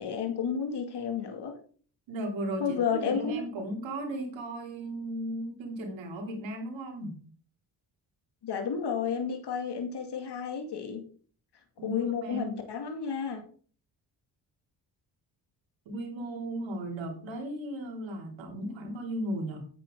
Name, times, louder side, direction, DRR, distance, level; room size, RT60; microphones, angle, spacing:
voice 1, 0.0-1.5 2.6-3.4 8.4-11.0 11.8-13.4, left 6 dB, 60° left, 4 dB, 2.4 m, -31 dB
voice 2, 2.1-7.2 11.8-12.5 15.8-19.6, right 1 dB, 85° right, 2 dB, 3.2 m, -36 dB
9.4 x 8.9 x 3.8 m, 0.43 s
supercardioid pair, 60°, 44 cm